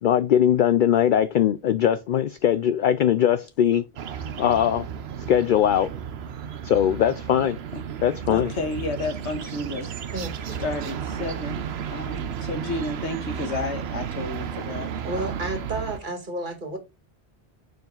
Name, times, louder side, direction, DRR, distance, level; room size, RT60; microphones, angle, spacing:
voice 1, 0.0-3.8 4.4-4.9 5.3-5.9 6.6-7.6 8.0-8.5, left 10 dB, 60° left, 0.6 m, -20 dB
sound 1, 4.0-16.0, right 8 dB, 70° right, 1.0 m, -33 dB
voice 2, 8.3-9.9 10.6-11.7 11.9-14.9, left 2 dB, 80° left, 1.8 m, -31 dB
voice 3, 10.1-10.6 14.5-14.7 15.0-16.8, right 2 dB, 45° right, 2.0 m, -32 dB
7.1 x 5.1 x 3.8 m
omnidirectional pair, 1.1 m